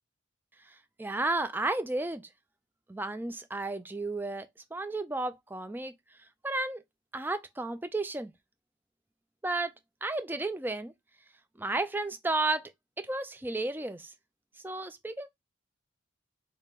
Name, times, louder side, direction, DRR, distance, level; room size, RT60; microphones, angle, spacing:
voice 1, 1.0-2.2 2.9-5.9 6.4-6.8 7.1-8.3 9.4-9.7 10.0-10.9 11.6-12.7 13.0-14.1 14.6-15.3, right 2 dB, 10° right, 0.3 m, -32 dB
3.5 x 2.4 x 4.3 m
head